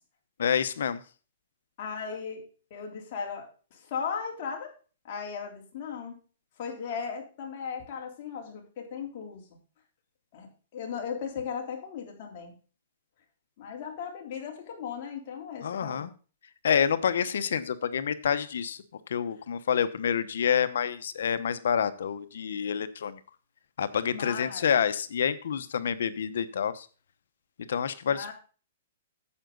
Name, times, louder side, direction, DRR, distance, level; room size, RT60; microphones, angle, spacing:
voice 1, 0.4-1.0 15.6-16.1 16.6-18.8 19.1-23.2 23.8-26.9 27.7-28.3, left 8 dB, 75° left, 13 dB, 0.9 m, -28 dB
voice 2, 1.8-2.4 2.7-4.7 5.0-6.2 6.6-9.4 10.3-12.5 13.6-16.1 24.1-24.7 28.1-28.3, left 6 dB, 40° left, 0 dB, 3.6 m, -37 dB
10.0 x 8.0 x 3.9 m, 0.36 s
hypercardioid pair, 155°, 0 cm